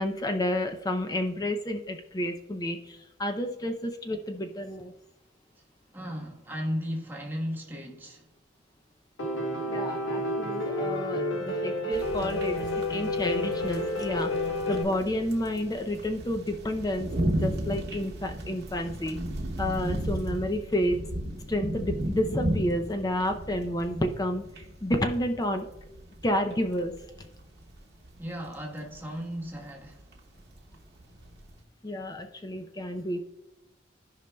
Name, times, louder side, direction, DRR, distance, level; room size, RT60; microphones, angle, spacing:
voice 1, 0.0-4.9 9.7-14.3 14.7-19.2 19.6-21.0 21.5-25.6 26.2-26.9 31.8-33.2, left 1 dB, 20° left, 0.5 m, -30 dB
voice 2, 5.9-8.3 28.2-30.6, equal, 10° right, 1.2 m, -36 dB
Piano, 9.2-14.8, left 1 dB, 80° left, 1.1 m, -30 dB
sound 1, 11.9-31.6, right 1 dB, 55° right, 0.9 m, -35 dB
13.5 x 5.2 x 2.2 m
head